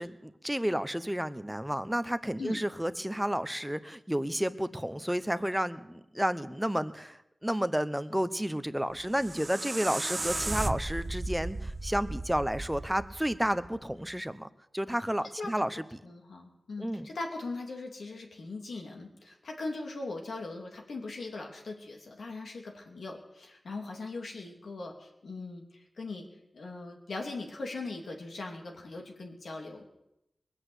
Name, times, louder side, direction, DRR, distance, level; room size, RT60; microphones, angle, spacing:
voice 1, 0.0-14.5 14.7-16.0 16.8-17.1, equal, 5° right, 12 dB, 0.9 m, -31 dB
sound 1, 8.9-14.0, right 2 dB, 35° right, 0.7 m, -36 dB
voice 2, 16.0-26.3 26.5-29.8, left 3 dB, 80° left, 1 dB, 3.0 m, -40 dB
21.5 x 8.1 x 8.1 m, 0.85 s
wide cardioid pair, 70°, 0 cm